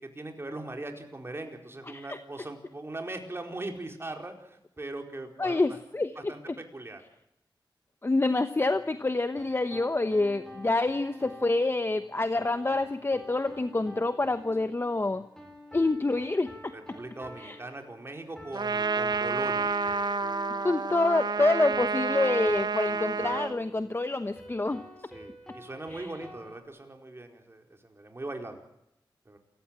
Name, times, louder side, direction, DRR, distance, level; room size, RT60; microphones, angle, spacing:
voice 1, 0.1-5.6 6.2-7.0 16.7-19.7 25.1-28.6 29.3-29.4, right 2 dB, 30° right, 4 dB, 4.6 m, -40 dB
voice 2, 1.9-2.2 5.4-6.6 8.0-15.2 15.7-17.0 17.4-17.6 20.6-24.8 25.9-26.1, left 2 dB, 30° left, 10 dB, 1.1 m, -27 dB
sound 1, 9.4-26.6, equal, 5° left, 7.2 m, -48 dB
Trumpet, 18.5-23.6, right 4 dB, 60° right, 1.1 m, -29 dB
28.5 x 15.5 x 9.0 m, 0.84 s
wide cardioid pair, 85°, 8 cm